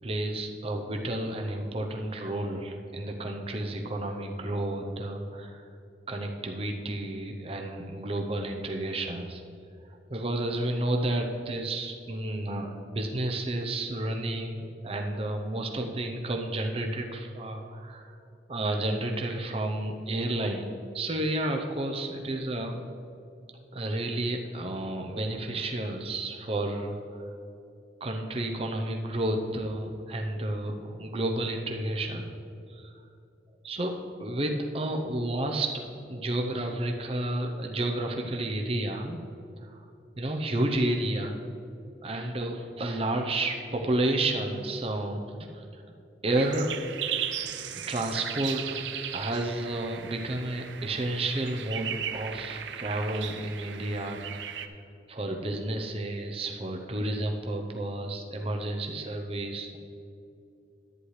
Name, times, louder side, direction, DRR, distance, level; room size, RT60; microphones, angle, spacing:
voice 1, 0.0-5.7 6.1-9.4 10.1-18.1 18.5-20.7 20.9-22.8 23.7-27.3 28.0-32.3 32.7-32.9 33.6-35.8 36.1-39.2 39.6-39.8 40.2-41.4 42.0-45.8 46.2-46.7 47.4-48.8 49.1-54.7 55.1-59.8, right 1 dB, 35° right, 3 dB, 0.7 m, -31 dB
sound 1, 46.3-54.7, right 9 dB, 90° right, 0.5 m, -37 dB
11.0 x 9.5 x 3.2 m, 2.6 s
head